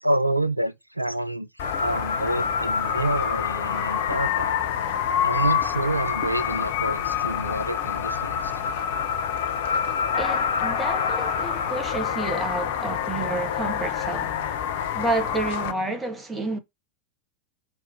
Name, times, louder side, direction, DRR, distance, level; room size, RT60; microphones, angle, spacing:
voice 1, 0.0-1.5 1.8-4.7 5.2-8.5, right 1 dB, 85° right, 0.5 m, -28 dB
sound 1, 1.6-15.7, left 7 dB, 50° left, 1.0 m, -26 dB
voice 2, 10.1-14.4 14.9-16.6, right 2 dB, 10° right, 1.8 m, -30 dB
5.3 x 4.8 x 4.5 m
figure-of-eight pair, 90°, 0 cm